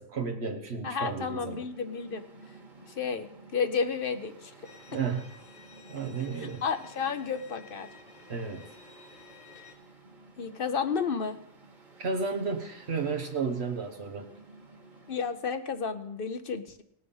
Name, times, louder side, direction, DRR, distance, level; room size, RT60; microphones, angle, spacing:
voice 1, 0.0-1.6 4.9-5.3 5.9-6.6 8.3-8.6 12.0-14.3, right 5 dB, 80° right, 4 dB, 1.4 m, -32 dB
voice 2, 0.8-2.2 3.0-3.3 3.5-4.5 6.4-7.9 10.4-11.4 15.1-16.8, left 6 dB, 60° left, 9 dB, 1.0 m, -31 dB
Mechanical fan, 0.8-15.7, right 3 dB, 45° right, 2.0 m, -53 dB
Bowed string instrument, 4.6-9.7, left 5 dB, 40° left, 1.2 m, -54 dB
18.5 x 6.2 x 5.5 m, 0.78 s
omnidirectional pair, 1.1 m